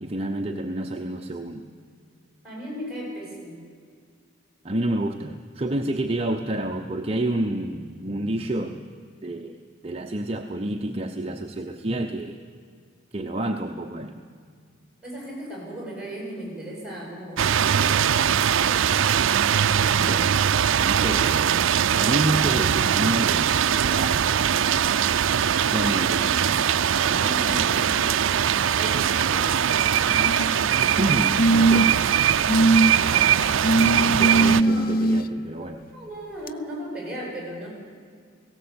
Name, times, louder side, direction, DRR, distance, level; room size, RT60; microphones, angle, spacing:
voice 1, 0.0-1.6 4.6-8.8 9.2-12.4 13.1-14.2 20.0-20.4 20.8-21.6 21.9-24.4 25.6-26.6 27.5-27.9 29.2-29.4 31.0-31.9 34.1-35.8, right 1 dB, 30° right, 3 dB, 0.8 m, -29 dB
voice 2, 2.4-3.6 15.0-18.1 27.0-28.0 28.8-29.8 32.9-34.2 34.6-34.9 35.6-37.7, right 1 dB, 5° right, -2 dB, 7.7 m, -36 dB
sound 1, 17.4-34.6, right 8 dB, 75° right, 0.5 m, -21 dB
sound 2, 30.1-30.7 31.4-32.1 32.5-32.9 33.6-35.2 36.5-36.6, right 2 dB, 45° left, 0.6 m, -20 dB
18.0 x 17.0 x 8.6 m, 2.1 s
head